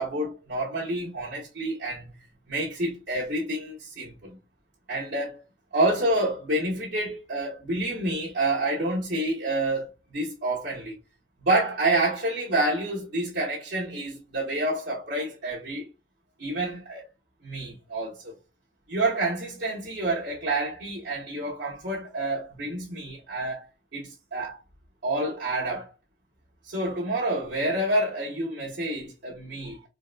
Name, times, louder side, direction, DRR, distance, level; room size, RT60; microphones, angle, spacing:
voice 1, 0.0-2.1 2.5-4.4 4.9-5.4 5.7-10.9 11.4-15.9 16.4-17.0 17.4-18.3 18.9-23.6 23.9-24.6 25.0-25.9 26.6-29.9, right 2 dB, 75° right, 1.0 m, -28 dB
3.8 x 2.4 x 2.2 m
head